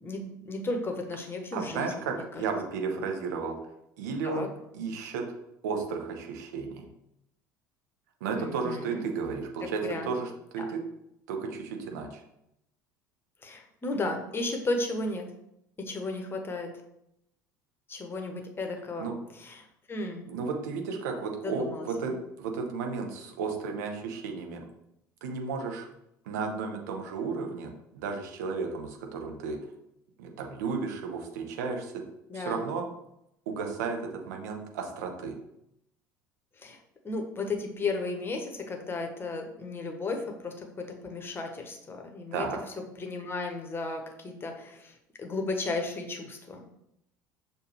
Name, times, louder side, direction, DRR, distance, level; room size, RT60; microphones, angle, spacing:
voice 1, 0.0-2.4 3.0-3.1 4.2-4.5 8.4-9.1 9.6-10.1 10.6-10.7 13.4-15.3 15.8-16.7 17.9-20.3 21.4-22.2 32.3-32.7 36.6-36.8 37.0-42.5 43.0-46.6, left 3 dB, 20° left, 4 dB, 0.9 m, -34 dB
voice 2, 1.5-3.6 4.0-5.2 5.6-6.9 8.2-10.8 11.3-12.2 19.0-19.1 20.3-22.1 22.4-24.6 25.2-25.9 26.3-29.6 30.2-31.9 32.3-32.8 33.5-34.0 34.3-35.3 42.3-42.6, right 5 dB, 60° right, 3 dB, 0.9 m, -33 dB
6.6 x 2.7 x 3.0 m, 0.80 s
figure-of-eight pair, 65°, 10 cm